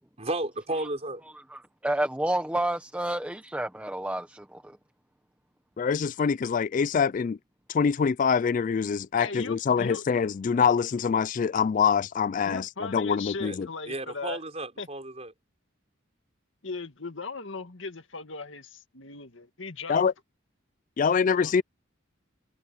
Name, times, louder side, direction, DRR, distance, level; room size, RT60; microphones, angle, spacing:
voice 1, 0.2-1.2 13.4-13.6 13.9-15.3, right 2 dB, 35° right, 4.3 m, -33 dB
voice 2, 1.5-4.8, right 1 dB, 5° right, 1.2 m, -30 dB
voice 3, 5.8-7.4 7.7-13.7 19.9-20.1 21.0-21.6, left 6 dB, 40° left, 0.3 m, -25 dB
voice 4, 9.2-10.0 12.4-14.4 14.8-14.9 16.6-20.0 21.3-21.6, left 3 dB, 75° left, 2.0 m, -38 dB
head